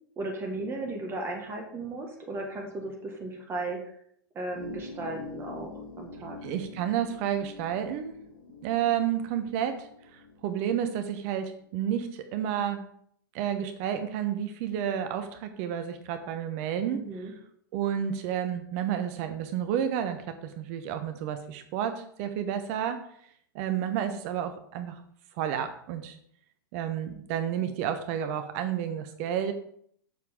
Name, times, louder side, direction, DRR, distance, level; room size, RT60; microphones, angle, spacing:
voice 1, 0.2-3.8 4.4-6.4 16.9-17.3, right 2 dB, 20° right, 2 dB, 1.8 m, -35 dB
sound 1, 4.5-11.5, left 5 dB, 75° left, 2.2 m, -46 dB
voice 2, 6.4-8.2 8.6-9.9 10.4-12.8 13.3-17.0 17.7-23.0 23.5-25.0 25.4-26.2 26.7-29.5, right 9 dB, 40° right, 8 dB, 1.0 m, -30 dB
8.1 x 7.0 x 3.8 m, 0.65 s
figure-of-eight pair, 100°, 12 cm